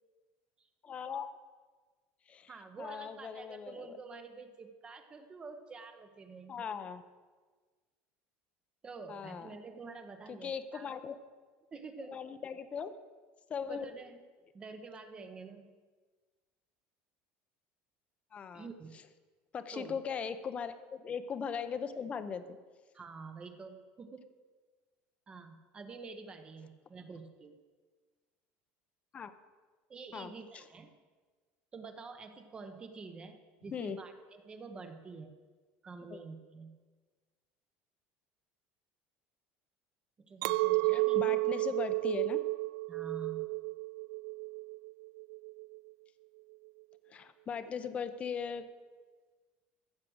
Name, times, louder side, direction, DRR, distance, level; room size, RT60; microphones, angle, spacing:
voice 1, 0.8-1.4 2.3-2.5 2.8-4.0 6.5-7.0 9.1-9.5 10.3-11.2 12.1-12.9 13.5-13.9 18.3-18.7 19.5-22.6 29.1-29.3 30.1-30.6 33.7-34.0 36.1-36.2 40.8-42.4 47.1-48.7, left 6 dB, 25° left, 11 dB, 0.7 m, -39 dB
voice 2, 2.5-6.7 8.8-10.9 11.7-12.1 13.7-14.2 14.5-15.7 18.5-18.9 19.7-20.0 22.9-24.3 25.3-27.6 29.9-31.0 31.7-35.4 35.8-36.8 40.3-41.7 42.9-43.5, right 4 dB, 20° right, 6 dB, 0.9 m, -48 dB
Chink clink, 40.4-45.8, right 24 dB, 85° right, 0.4 m, -32 dB
15.0 x 7.5 x 6.3 m, 1.4 s
cardioid pair, 155°, 5 cm